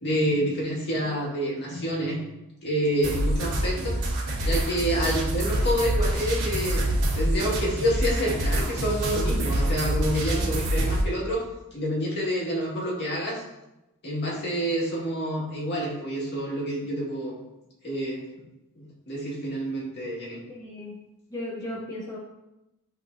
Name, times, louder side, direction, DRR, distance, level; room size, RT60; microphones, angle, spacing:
voice 1, 0.0-2.2 2.6-4.0 4.4-11.4 11.7-13.4 14.0-17.4 17.8-18.2 18.8-20.4, equal, 50° left, -4 dB, 1.8 m, -28 dB
sound 1, 3.0-11.0, right 1 dB, 70° right, 2.1 m, -26 dB
voice 2, 20.5-21.0 21.3-22.2, left 1 dB, 15° left, -5 dB, 0.9 m, -35 dB
10.5 x 3.6 x 2.6 m, 0.93 s
head